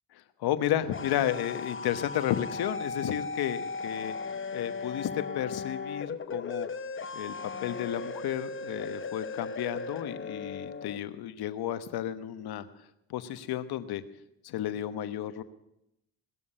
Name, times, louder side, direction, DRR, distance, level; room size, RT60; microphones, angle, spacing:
voice 1, 0.1-4.2 4.5-6.7 7.1-7.3 7.6-12.7 13.1-14.0 14.4-15.4, left 11 dB, 75° left, 12 dB, 1.2 m, -32 dB
sound 1, 0.6-11.0, left 4 dB, 30° left, 1.1 m, -37 dB
19.0 x 7.2 x 9.8 m, 0.86 s
supercardioid pair, 75°, 38 cm